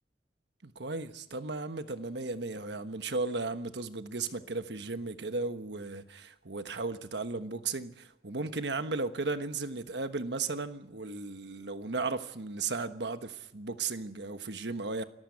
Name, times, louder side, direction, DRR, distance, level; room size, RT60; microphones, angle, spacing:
voice 1, 0.6-15.0, right 3 dB, 75° right, 1.3 m, -35 dB
25.5 x 14.0 x 8.6 m
head